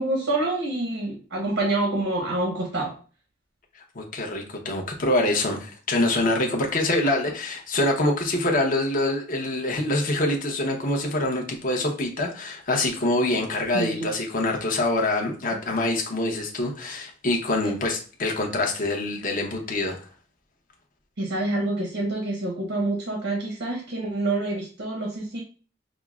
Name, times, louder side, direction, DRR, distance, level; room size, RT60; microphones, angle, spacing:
voice 1, 0.0-2.9 13.7-14.1 17.6-17.7 21.2-25.4, right 2 dB, 85° right, -1 dB, 0.9 m, -27 dB
voice 2, 3.9-20.0, left 2 dB, 45° left, 1 dB, 0.8 m, -25 dB
6.1 x 2.0 x 2.3 m, 0.38 s
head